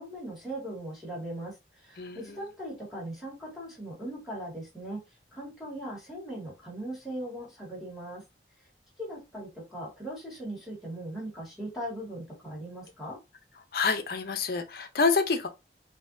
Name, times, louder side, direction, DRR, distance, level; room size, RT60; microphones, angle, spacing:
voice 1, 0.0-5.0 5.3-8.2 9.0-13.2, right 1 dB, ahead, 1.8 m, -39 dB
voice 2, 2.0-2.4 13.7-15.5, left 4 dB, 55° left, 0.6 m, -27 dB
4.0 x 2.7 x 2.6 m
head